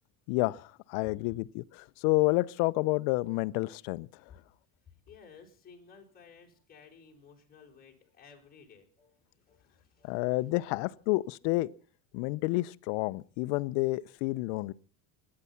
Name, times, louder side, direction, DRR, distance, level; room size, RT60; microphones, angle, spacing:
voice 1, 0.3-1.6 2.0-4.1 10.0-11.7 12.1-14.7, left 22 dB, 65° left, 0.8 m, -29 dB
voice 2, 4.8-10.6 11.1-11.2, left 6 dB, 20° left, 5.2 m, -56 dB
24.5 x 9.8 x 5.8 m
cardioid pair, 145°, 46 cm